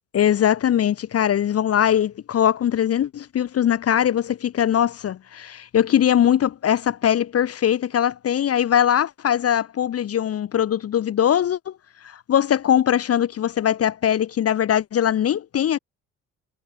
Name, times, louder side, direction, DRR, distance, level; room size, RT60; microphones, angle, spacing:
voice 1, 0.1-11.7 12.0-15.8, left 10 dB, 35° left, 0.8 m, -21 dB
figure-of-eight pair, 45°, 40 cm